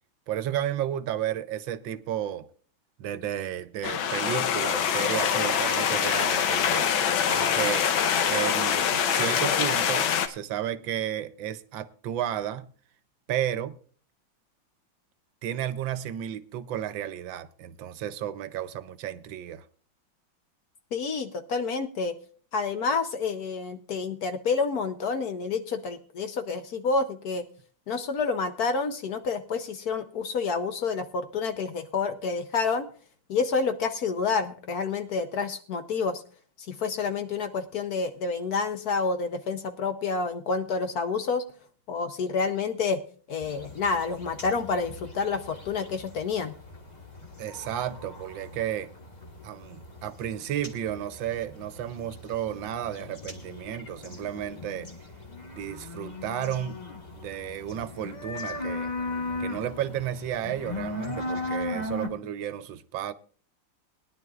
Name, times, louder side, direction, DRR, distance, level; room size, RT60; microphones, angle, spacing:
voice 1, 0.3-2.5 3.0-6.9 7.3-7.9 8.2-12.7 13.3-13.8 15.4-19.6 47.4-48.9 49.4-54.9 55.5-56.8 57.1-58.9 59.4-63.1, right 11 dB, 75° right, 1.4 m, -33 dB
sound 1, 3.8-10.3, left 8 dB, 85° left, 1.7 m, -24 dB
voice 2, 20.9-22.2 22.5-27.5 27.9-32.9 33.3-36.2 36.7-41.4 41.9-43.0 43.3-46.5, left 4 dB, 60° left, 1.1 m, -28 dB
sound 2, 43.4-62.1, left 2 dB, 25° left, 1.3 m, -38 dB
20.5 x 10.5 x 2.4 m
omnidirectional pair, 2.1 m